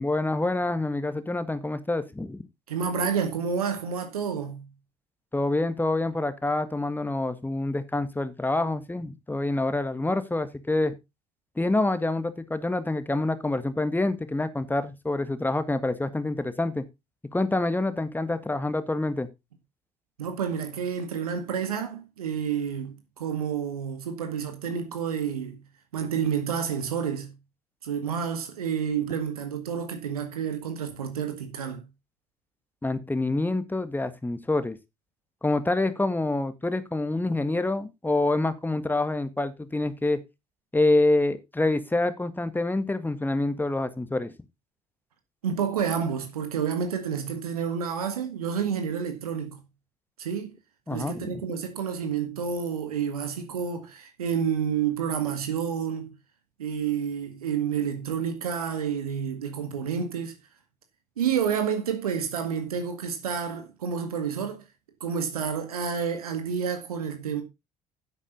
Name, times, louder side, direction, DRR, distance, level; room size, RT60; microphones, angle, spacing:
voice 1, 0.0-2.4 5.3-10.9 11.6-16.8 17.3-19.3 32.8-34.8 35.4-40.2 40.7-44.3 50.9-51.4, left 2 dB, 10° left, 1.6 m, -26 dB
voice 2, 2.7-4.7 20.2-25.6 25.9-27.3 27.8-31.8 45.4-49.6 50.2-50.5 50.9-56.1 56.6-60.4 61.2-64.6 65.0-67.4, right 7 dB, 75° right, 2.0 m, -29 dB
10.5 x 8.4 x 4.0 m
figure-of-eight pair, 55°, 19 cm